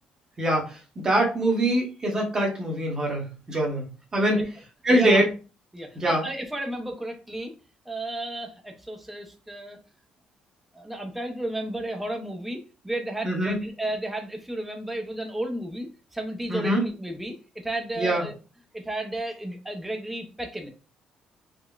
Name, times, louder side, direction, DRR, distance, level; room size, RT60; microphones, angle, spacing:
voice 1, 0.4-0.8 1.0-3.8 4.1-4.4 4.8-5.2 5.9-6.2 13.2-13.6 16.5-16.8 18.0-18.2, right 1 dB, 25° right, -1 dB, 1.0 m, -23 dB
voice 2, 4.9-5.2 5.7-7.5 7.9-9.8 10.7-18.3 18.7-20.7, right 1 dB, 5° right, 3 dB, 0.5 m, -33 dB
3.7 x 2.1 x 2.3 m, 0.33 s
cardioid pair, 140°, 2 cm